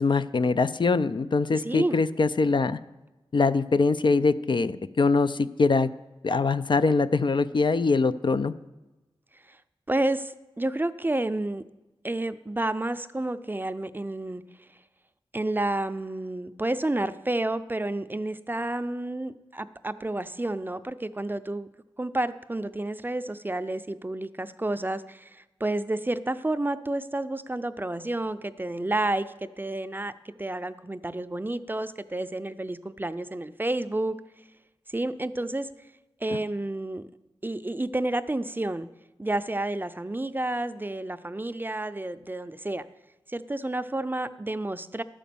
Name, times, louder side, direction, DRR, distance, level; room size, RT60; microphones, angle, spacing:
voice 1, 0.0-2.8 3.3-5.9 6.2-8.5 36.3-36.4, left 4 dB, 50° left, 13 dB, 0.4 m, -23 dB
voice 2, 1.6-2.0 9.5-9.6 9.9-11.6 12.0-14.4 15.3-21.7 22.0-34.1 34.9-35.7 36.2-37.1 37.4-38.9 39.2-42.8 43.3-45.0, right 2 dB, 20° right, 12 dB, 0.5 m, -30 dB
11.0 x 5.1 x 6.9 m, 1.1 s
cardioid pair, 45°, 10 cm